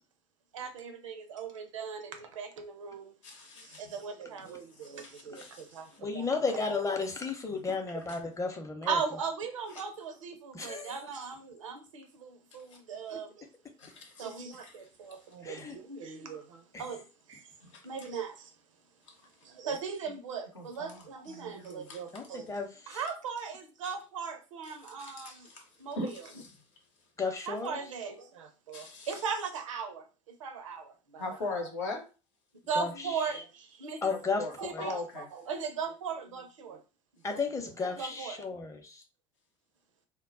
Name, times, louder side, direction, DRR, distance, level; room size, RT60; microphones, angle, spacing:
voice 1, 0.5-3.1 3.6-6.3 8.9-12.6 12.9-13.3 14.2-17.0 17.3-17.4 17.8-18.5 19.4-22.5 22.9-25.5 25.8-26.2 27.5-31.6 32.7-34.0 34.6-36.8 37.3-37.4 37.8-38.4, right 6 dB, 75° right, 0.5 m, -38 dB
voice 2, 3.2-3.9 4.8-6.0 7.7-7.8 8.1-8.2 9.7-9.8 13.8-14.3 14.6-14.7 17.6-18.1 20.5-22.2 24.6-25.6 25.9-26.6 28.7-29.2 31.2-32.0 34.1-35.3, left 2 dB, 70° left, 0.8 m, -41 dB
voice 3, 6.0-9.0 10.5-11.0 15.4-15.8 16.7-16.8 22.1-23.0 27.2-27.8 32.7-33.4 34.0-34.9 37.2-39.0, left 4 dB, 20° left, 0.7 m, -34 dB
2.2 x 2.0 x 3.7 m
figure-of-eight pair, 60°, 17 cm